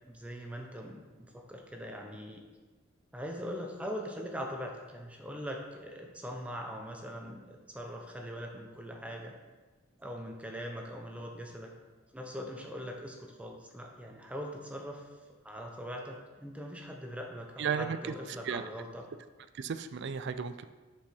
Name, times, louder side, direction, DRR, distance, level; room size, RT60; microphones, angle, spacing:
voice 1, 0.1-2.4 3.1-9.4 10.0-11.7 12.1-15.1 15.4-19.1, equal, 5° right, 1 dB, 0.8 m, -41 dB
voice 2, 17.6-18.0 18.4-18.6 19.5-20.7, right 6 dB, 60° right, 11 dB, 0.4 m, -34 dB
7.3 x 4.7 x 5.4 m, 1.3 s
head